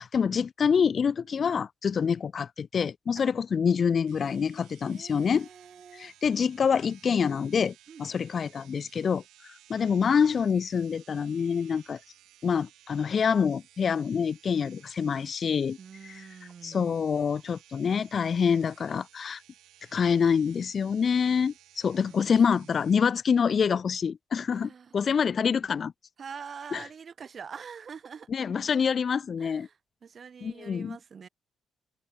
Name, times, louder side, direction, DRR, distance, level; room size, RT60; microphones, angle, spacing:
voice 1, 0.0-5.5 5.9-12.0 12.4-15.8 16.0-16.3 16.6-19.4 19.9-25.9 26.7-26.8 28.3-29.7 30.4-31.0, left 6 dB, 45° left, 0.6 m, -26 dB
sound 1, 4.1-23.0, right 13 dB, 85° right, 6.3 m, -58 dB
voice 2, 4.8-6.1 7.9-8.1 15.8-17.0 22.0-22.9 24.5-25.0 26.2-28.3 29.4-31.3, right 6 dB, 45° right, 6.2 m, -45 dB
open air
cardioid pair, 90°, 0 cm